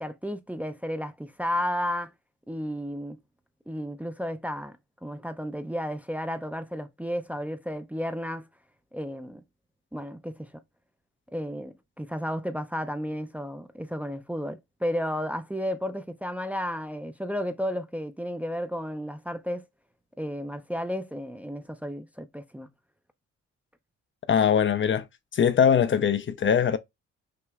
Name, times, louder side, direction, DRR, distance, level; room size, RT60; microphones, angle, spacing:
voice 1, 0.0-2.1 2.5-3.2 3.7-4.8 5.0-8.5 8.9-9.4 9.9-10.5 11.3-19.7 20.2-22.7, equal, 5° right, 0.6 m, -33 dB
voice 2, 24.3-25.1 25.3-26.8, left 7 dB, 40° left, 0.6 m, -21 dB
5.9 x 3.0 x 2.3 m
cardioid pair, 90°, 30 cm